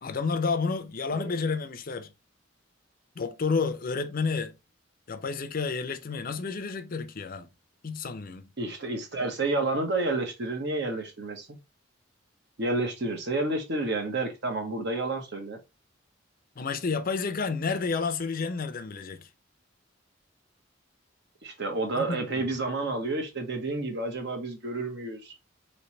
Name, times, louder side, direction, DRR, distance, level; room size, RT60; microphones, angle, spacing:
voice 1, 0.0-2.1 3.2-4.5 5.1-7.5 7.8-8.5 16.6-19.3 21.9-22.5, left 4 dB, 45° left, 0.5 m, -30 dB
voice 2, 8.6-11.6 12.6-15.6 21.4-25.3, right 2 dB, 60° right, 1.1 m, -30 dB
3.2 x 3.1 x 4.2 m
head